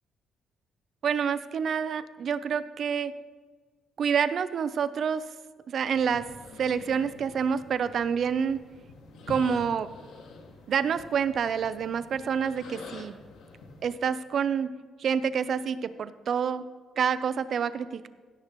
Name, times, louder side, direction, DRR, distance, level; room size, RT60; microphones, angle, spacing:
voice 1, 1.0-3.1 4.0-5.2 5.7-6.2 6.6-8.6 9.3-9.9 10.7-13.2 13.8-14.7 15.0-16.6 17.0-18.1, right 7 dB, 60° right, 14 dB, 0.6 m, -27 dB
sound 1, 5.8-13.9, left 3 dB, 85° left, 2.1 m, -47 dB
16.5 x 10.5 x 3.1 m, 1.5 s
cardioid pair, 90°, 0 cm